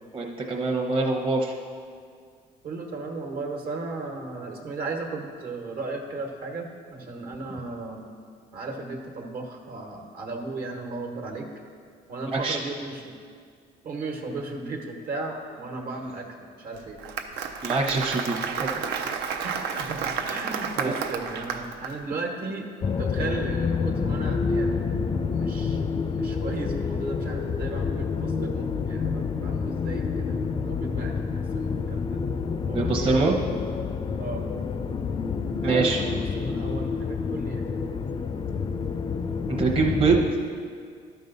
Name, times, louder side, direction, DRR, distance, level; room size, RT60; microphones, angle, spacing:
voice 1, 0.1-1.5 12.3-12.6 17.6-18.8 20.8-20.9 32.7-33.3 35.6-36.0 39.5-40.3, right 3 dB, 30° right, -1 dB, 0.9 m, -24 dB
voice 2, 2.6-8.1 8.5-11.5 12.1-13.2 13.8-17.0 19.4-32.2 32.7-33.6 34.2-34.5 35.6-37.7, right 3 dB, 65° right, 1 dB, 1.4 m, -35 dB
Applause, 16.8-21.9, right 6 dB, 80° right, 0.7 m, -31 dB
sound 1, 22.8-40.3, left 5 dB, 30° left, 0.4 m, -28 dB
12.5 x 5.5 x 4.0 m, 2.1 s
cardioid pair, 110°, 17 cm